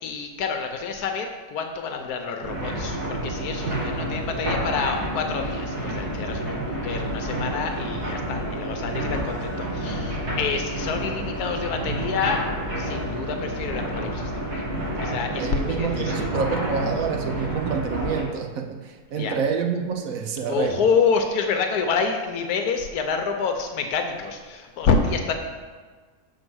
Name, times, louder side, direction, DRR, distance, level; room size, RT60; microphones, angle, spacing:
voice 1, 0.0-12.4 12.8-14.6 15.0-16.3 19.2-19.4 20.5-25.3, left 5 dB, 80° left, 5 dB, 1.2 m, -27 dB
sound 1, 2.4-18.2, right 1 dB, 80° right, 2.3 m, -29 dB
voice 2, 15.3-20.9, right 6 dB, 65° right, 4 dB, 1.0 m, -27 dB
6.5 x 4.6 x 6.1 m, 1.5 s
omnidirectional pair, 1.6 m